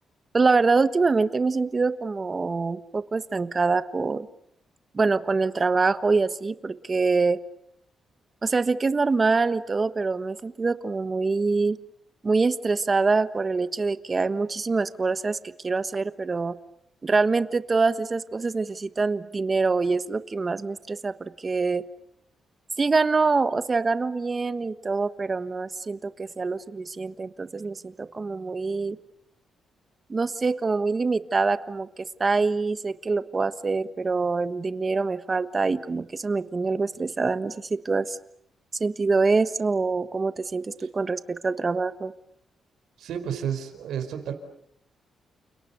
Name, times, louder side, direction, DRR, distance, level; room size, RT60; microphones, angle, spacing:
voice 1, 0.3-4.3 4.9-7.4 8.4-11.8 12.2-15.4 15.6-16.6 17.0-21.8 22.8-29.0 30.1-38.2 38.8-42.1, right 4 dB, 30° right, 13 dB, 1.4 m, -25 dB
voice 2, 43.0-44.3, right 8 dB, 85° right, 7 dB, 4.6 m, -31 dB
29.5 x 29.5 x 6.9 m, 0.72 s
cardioid pair, 110°, 0 cm